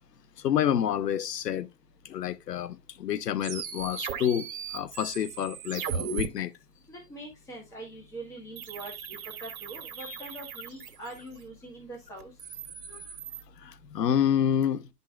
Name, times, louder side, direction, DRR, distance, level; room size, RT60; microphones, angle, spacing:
voice 1, 0.4-1.7 2.1-4.5 4.7-6.5 10.0-10.2 12.9-13.0 13.6-14.8, left 9 dB, 90° left, 0.9 m, -28 dB
sound 1, 3.4-6.3 8.6-11.4 12.2-13.4, right 7 dB, 60° right, 1.6 m, -38 dB
voice 2, 6.9-8.9 9.4-12.3, right 2 dB, 5° left, 1.2 m, -43 dB
11.5 x 5.5 x 2.4 m
hypercardioid pair, 160°, 48 cm